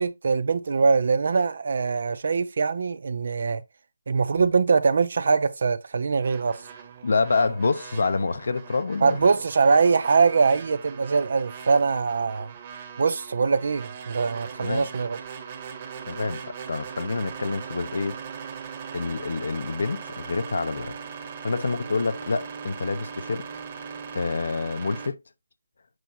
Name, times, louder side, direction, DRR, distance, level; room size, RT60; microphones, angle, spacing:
voice 1, 0.0-3.6 4.1-6.6 9.0-12.5 13.0-15.2, right 4 dB, 55° right, 0.8 m, -22 dB
sound 1, 6.2-25.1, right 6 dB, 35° right, 1.8 m, -40 dB
voice 2, 7.0-9.3 14.6-14.9 16.1-18.2 18.9-20.9 21.4-23.5 24.1-25.2, left 4 dB, 65° left, 0.9 m, -27 dB
7.9 x 5.5 x 2.8 m
figure-of-eight pair, 155°, 0 cm